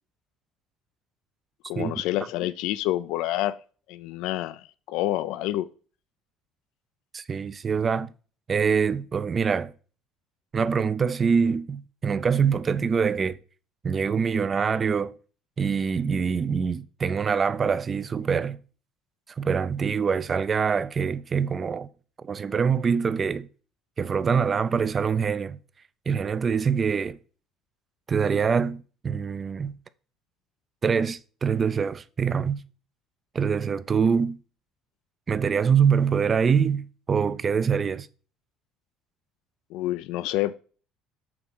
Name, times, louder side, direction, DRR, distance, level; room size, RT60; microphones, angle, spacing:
voice 1, 1.7-3.6 3.9-5.7 39.7-40.6, left 15 dB, 75° left, 0.4 m, -28 dB
voice 2, 7.1-8.1 8.5-9.7 10.5-13.4 13.8-15.2 15.6-18.6 19.4-21.9 22.2-23.5 24.0-25.6 26.1-27.2 28.1-29.8 30.8-32.6 33.3-34.4 35.3-38.1, right 6 dB, 25° right, 0.5 m, -24 dB
8.6 x 3.6 x 6.0 m
cardioid pair, 145°, 0 cm